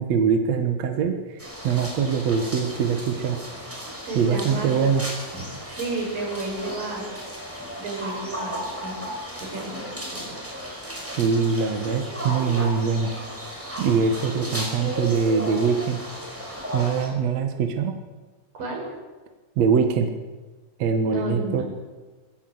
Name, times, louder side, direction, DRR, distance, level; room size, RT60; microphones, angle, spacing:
voice 1, 0.0-3.4 4.2-5.0 11.2-13.1 13.8-16.0 16.7-18.0 19.6-20.1 20.8-21.6, right 6 dB, 60° right, 5 dB, 2.4 m, -23 dB
sound 1, 1.4-17.1, equal, 5° right, 5.2 m, -35 dB
voice 2, 4.0-4.7 5.3-7.1 7.8-9.0 9.3-10.3 18.6-18.8 21.0-21.6, right 2 dB, 80° right, -1 dB, 7.7 m, -32 dB
21.0 x 17.0 x 7.9 m, 1.3 s
omnidirectional pair, 3.9 m